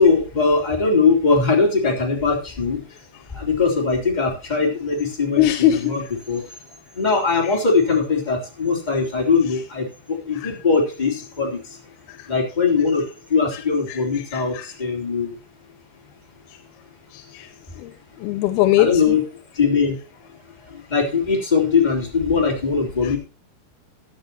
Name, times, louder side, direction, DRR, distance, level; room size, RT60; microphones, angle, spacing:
voice 1, 0.0-2.8 3.3-6.5 6.9-11.8 12.3-15.4 18.8-19.2 19.5-20.0 20.7-23.2, left 4 dB, 10° left, -1 dB, 3.1 m, -21 dB
voice 2, 5.4-5.9 10.4-10.5 12.2-12.3 13.9-14.0 14.3-14.7 17.1-17.5 17.8-17.9 18.2-19.2 23.0-23.1, left 13 dB, 85° left, 9 dB, 2.8 m, -20 dB
16.0 x 10.5 x 2.9 m, 0.33 s
omnidirectional pair, 4.4 m